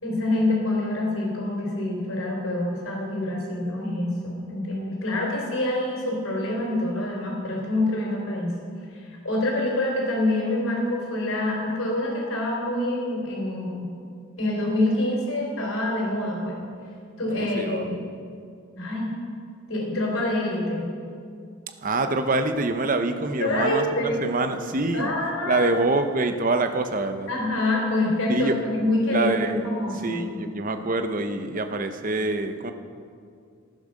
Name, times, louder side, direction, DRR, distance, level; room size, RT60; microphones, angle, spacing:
voice 1, 0.0-8.5 8.9-13.9 14.4-16.6 17.2-18.1 18.8-19.1 19.7-20.9 23.4-24.2 24.9-25.7 27.3-30.4, left 1 dB, 80° left, -3 dB, 3.4 m, -26 dB
voice 2, 17.3-18.0 21.8-25.1 25.5-27.3 28.3-28.6 29.1-29.7 30.0-32.7, right 2 dB, 40° right, 7 dB, 0.8 m, -25 dB
14.5 x 9.4 x 6.4 m, 2.3 s
head